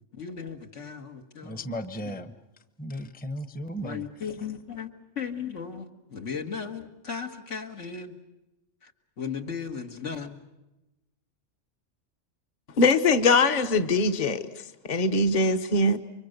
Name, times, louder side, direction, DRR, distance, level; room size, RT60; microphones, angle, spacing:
voice 1, 0.1-1.7 2.0-2.2 3.8-4.9 5.2-8.2 8.8-8.9 9.2-10.4, left 6 dB, 75° left, 2.1 m, -36 dB
voice 2, 1.4-2.3 2.8-4.0, equal, 10° left, 0.8 m, -35 dB
voice 3, 12.8-14.5 14.8-16.0, left 3 dB, 40° left, 1.1 m, -22 dB
29.5 x 24.5 x 6.7 m
omnidirectional pair, 1.3 m